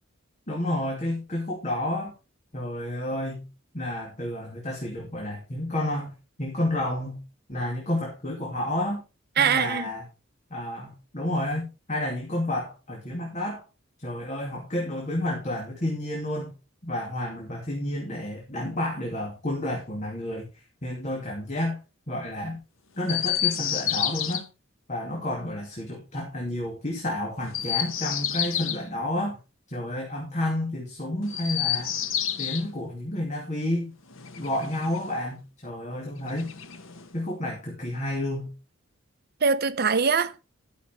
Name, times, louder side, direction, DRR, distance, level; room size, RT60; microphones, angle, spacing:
voice 1, 0.5-2.1 2.5-3.5 3.7-6.1 6.4-7.2 7.5-9.0 9.4-10.1 10.5-13.6 14.0-16.5 16.8-21.8 22.1-22.6 23.0-24.5 24.9-29.4 29.7-32.0 32.4-33.9 34.4-36.5 37.1-38.5, left 1 dB, 35° left, 2.5 m, -30 dB
voice 2, 9.4-9.8 39.4-40.4, right 6 dB, 50° right, 0.8 m, -22 dB
Chirp tweet, 23.0-24.4 27.4-28.8 31.2-32.7 34.1-35.2 36.3-37.2, left 10 dB, 70° left, 1.2 m, -29 dB
12.5 x 6.6 x 4.5 m
head